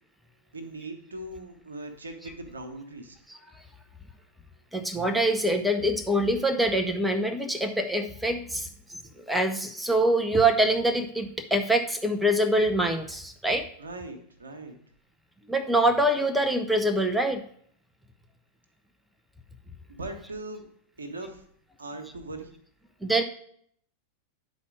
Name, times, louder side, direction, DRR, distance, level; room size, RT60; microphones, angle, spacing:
voice 1, 0.5-3.2 13.8-14.8 19.9-20.7 21.0-21.4 21.8-22.5, right 2 dB, 75° right, 5 dB, 1.1 m, -39 dB
voice 2, 4.7-8.7 9.2-13.7 15.5-17.4 23.0-23.2, right 1 dB, 5° right, 5 dB, 0.7 m, -25 dB
10.5 x 4.2 x 4.8 m, 0.63 s
figure-of-eight pair, 90°, 0 cm